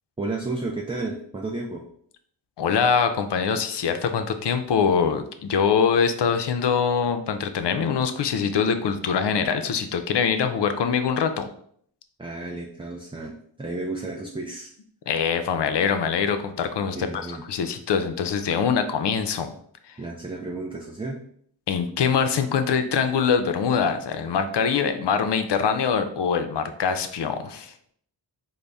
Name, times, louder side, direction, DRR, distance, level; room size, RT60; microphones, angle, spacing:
voice 1, 0.2-1.9 12.2-14.7 16.9-17.4 20.0-21.2, right 2 dB, 10° right, 0 dB, 0.4 m, -32 dB
voice 2, 2.6-11.5 15.1-19.5 21.7-27.7, left 6 dB, 65° left, 9 dB, 0.5 m, -23 dB
3.9 x 2.0 x 3.4 m, 0.63 s
cardioid pair, 45°, 45 cm